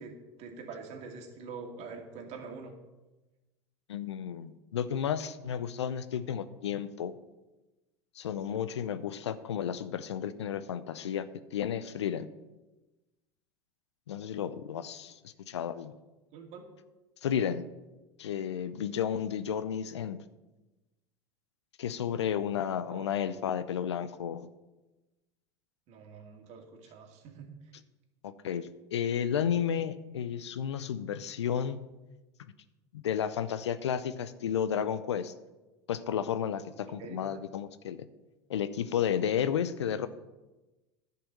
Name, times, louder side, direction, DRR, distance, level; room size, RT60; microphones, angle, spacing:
voice 1, 0.0-2.7 16.3-16.7 22.8-23.2 25.9-27.5 36.9-37.2, right 4 dB, 50° right, 3 dB, 2.3 m, -45 dB
voice 2, 3.9-7.1 8.2-12.3 14.1-15.9 17.2-17.6 18.2-20.2 21.8-24.5 28.2-31.8 32.9-35.3 35.9-38.0 38.5-40.1, left 8 dB, 85° left, 14 dB, 0.6 m, -32 dB
10.5 x 5.7 x 7.7 m, 1.1 s
hypercardioid pair, 80°, 14 cm